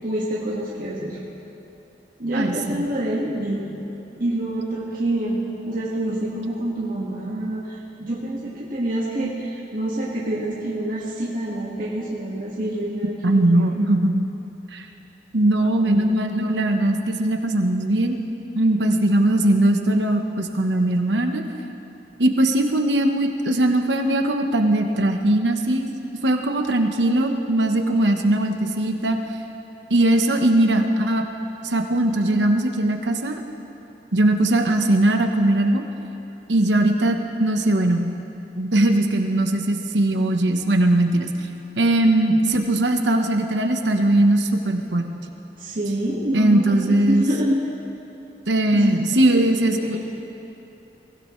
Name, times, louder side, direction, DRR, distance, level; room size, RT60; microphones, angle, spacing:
voice 1, 0.0-1.2 2.2-3.7 4.2-5.4 5.7-13.7 15.8-16.5 45.6-47.6 48.7-49.5 49.9-50.0, right 1 dB, 50° right, -6 dB, 1.8 m, -27 dB
voice 2, 2.3-2.8 13.2-14.3 14.7-14.9 15.3-18.2 18.5-21.4 22.2-25.9 26.2-29.2 29.9-31.2 31.6-33.4 34.1-35.8 36.5-38.1 38.6-41.3 41.8-45.1 46.3-47.3 48.5-50.0, right 1 dB, 85° right, 4 dB, 1.2 m, -20 dB
23.0 x 16.0 x 3.2 m, 2.9 s
head